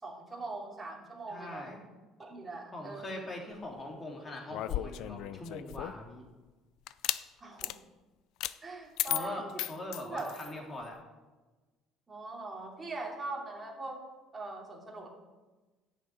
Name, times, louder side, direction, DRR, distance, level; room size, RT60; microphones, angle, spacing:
voice 1, 0.0-1.8 2.2-3.3 7.4-7.8 8.6-9.7 10.0-10.6 12.1-14.0 14.3-15.1, right 2 dB, 20° right, -1 dB, 2.9 m, -41 dB
voice 2, 1.3-1.8 2.7-6.2 9.1-11.0, left 1 dB, 25° left, 0 dB, 3.2 m, -42 dB
sound 1, 4.5-6.1 6.9-7.2 7.6-7.8 8.4-8.6 9.0-10.5, left 15 dB, 70° left, 0.4 m, -35 dB
11.0 x 6.8 x 9.0 m, 1.2 s
cardioid pair, 125°, 0 cm